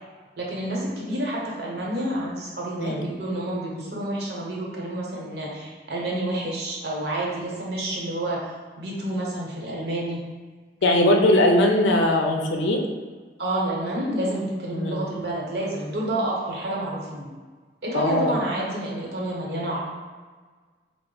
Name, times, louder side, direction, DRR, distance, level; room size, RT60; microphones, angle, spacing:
voice 1, 0.4-8.5 8.8-10.2 13.4-17.3 17.8-19.8, right 1 dB, 60° right, -4 dB, 0.9 m, -29 dB
voice 2, 10.8-12.8 14.7-15.0 17.9-18.3, left 1 dB, 85° left, 2 dB, 0.5 m, -20 dB
4.3 x 2.0 x 3.8 m, 1.4 s
head